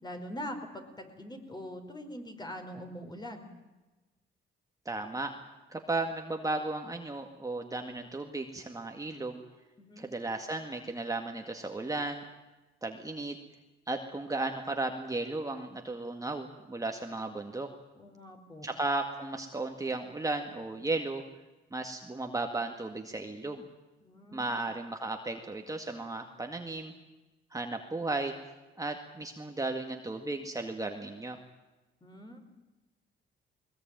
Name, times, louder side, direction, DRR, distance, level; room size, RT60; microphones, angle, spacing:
voice 1, 0.0-3.4 9.8-10.1 18.0-18.7 24.0-24.5 32.0-32.4, equal, 20° left, 5 dB, 4.9 m, -43 dB
voice 2, 4.9-5.3 5.7-9.4 10.0-12.2 12.8-13.4 13.9-17.7 18.6-21.2 21.7-23.6 24.3-26.9 27.5-28.3 28.8-31.4, right 2 dB, 15° right, 4 dB, 2.0 m, -35 dB
21.0 x 20.5 x 9.1 m, 1.1 s
cardioid pair, 90°, 20 cm